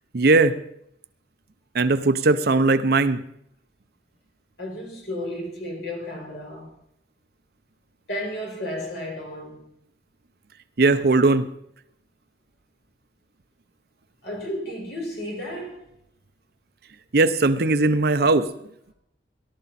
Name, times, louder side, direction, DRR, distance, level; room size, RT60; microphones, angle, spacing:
voice 1, 0.1-0.6 1.7-3.2 10.8-11.5 17.1-18.5, right 3 dB, 60° right, 0.7 m, -19 dB
voice 2, 4.6-6.7 8.1-9.6 14.2-15.9, left 1 dB, 65° left, 5.2 m, -33 dB
18.0 x 12.0 x 4.2 m
head